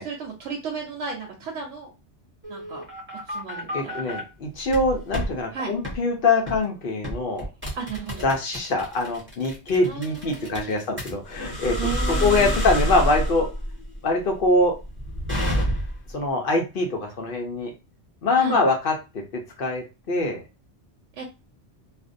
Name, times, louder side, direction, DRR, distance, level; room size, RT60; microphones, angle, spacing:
voice 1, 0.0-1.9 2.5-2.8 3.3-4.2 5.5-5.7 7.7-8.3 9.8-10.8 11.8-12.6 18.3-18.6 21.1-21.2, right 5 dB, 90° right, 0 dB, 0.9 m, -34 dB
sound 1, 2.4-4.2 4.7-5.3 5.8-6.0 6.5-6.7 7.0-16.1, equal, 10° right, 0.7 m, -28 dB
voice 2, 3.7-7.5 8.2-11.8 12.1-13.5 14.0-14.7 16.1-17.7 18.2-19.2 19.6-20.4, left 2 dB, 55° left, 2 dB, 0.7 m, -23 dB
2.5 x 2.1 x 2.5 m, 0.27 s
omnidirectional pair, 1.2 m